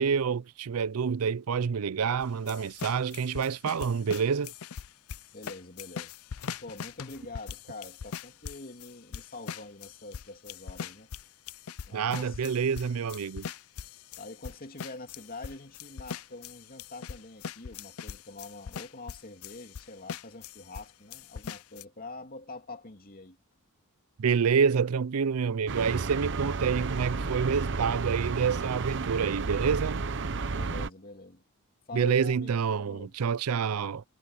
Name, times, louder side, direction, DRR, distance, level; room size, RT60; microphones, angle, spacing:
voice 1, 0.0-4.5 11.9-13.5 24.2-30.0 31.9-34.0, right 6 dB, 80° right, 0.5 m, -27 dB
sound 1, 2.2-20.9 21.1-21.8, left 7 dB, 70° left, 0.5 m, -41 dB
voice 2, 5.3-6.2 6.6-11.1 11.9-12.4 14.2-23.4 30.5-31.4 31.9-33.2, left 2 dB, 40° left, 2.7 m, -45 dB
sound 2, 25.7-30.9, right 4 dB, 55° right, 0.9 m, -32 dB
head